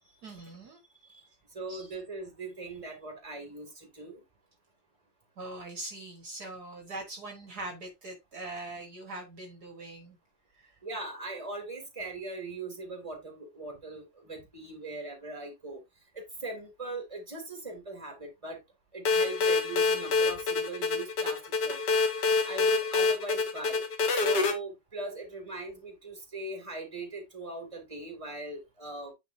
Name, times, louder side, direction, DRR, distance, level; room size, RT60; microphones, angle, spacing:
voice 1, 0.2-0.8 1.7-1.9 5.4-10.2 10.5-10.8, right 2 dB, 60° right, 2.0 m, -42 dB
voice 2, 1.5-4.2 10.8-15.8 16.1-18.6 18.9-23.8 24.1-29.1, right 2 dB, 15° right, 2.6 m, -40 dB
sound 1, 19.0-24.5, left 4 dB, 65° left, 2.0 m, -26 dB
9.2 x 5.1 x 2.7 m
omnidirectional pair, 2.0 m